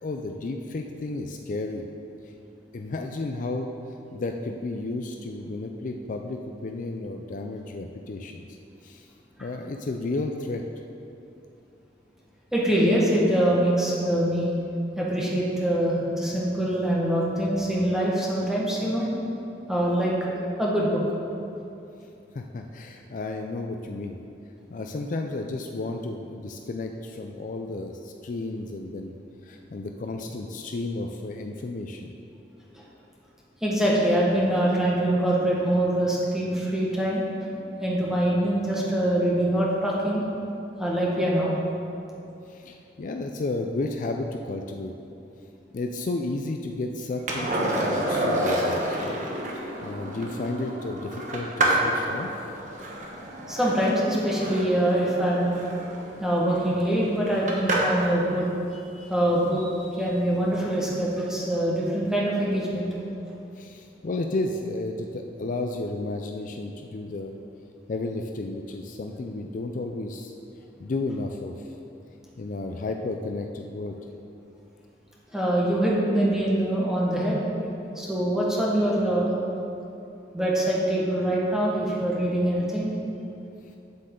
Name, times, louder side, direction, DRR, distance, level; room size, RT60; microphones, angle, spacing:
voice 1, 0.0-1.8 2.3-2.4 2.7-3.7 4.1-8.6 8.8-9.1 9.4-10.6 22.3-24.2 24.7-29.1 29.4-32.1 42.5-44.9 45.7-49.2 49.8-52.5 63.6-67.4 67.9-70.3 70.8-71.7 72.4-74.0, left 2 dB, 45° left, 4 dB, 0.4 m, -32 dB
voice 2, 12.5-14.5 15.0-19.1 19.7-20.1 20.6-21.0 33.6-37.5 37.8-40.2 40.8-41.5 53.5-55.5 56.2-58.5 58.9-62.9 75.3-77.4 77.9-79.3 80.3-82.9, right 1 dB, 5° right, -5 dB, 1.4 m, -24 dB
Skateboard, 47.3-58.1 60.7-60.8, right 1 dB, 45° right, 1.2 m, -29 dB
8.8 x 7.6 x 3.8 m, 2.7 s
head